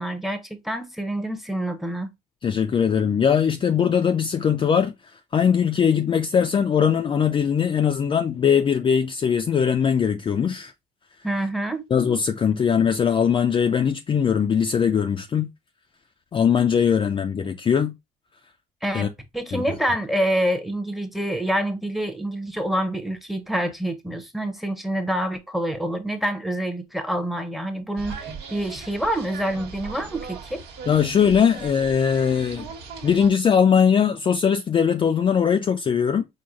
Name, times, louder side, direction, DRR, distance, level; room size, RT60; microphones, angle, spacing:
voice 1, 0.0-2.1 11.2-11.8 18.8-30.6, right 1 dB, ahead, 0.7 m, -27 dB
voice 2, 2.4-4.9 5.3-10.7 11.9-15.5 16.3-17.9 18.9-19.1 19.5-19.6 30.9-32.7 33.0-36.3, left 7 dB, 30° left, 0.4 m, -20 dB
sound 1, 28.0-33.3, right 5 dB, 85° right, 1.3 m, -39 dB
4.7 x 2.1 x 3.7 m
cardioid pair, 110°, 17 cm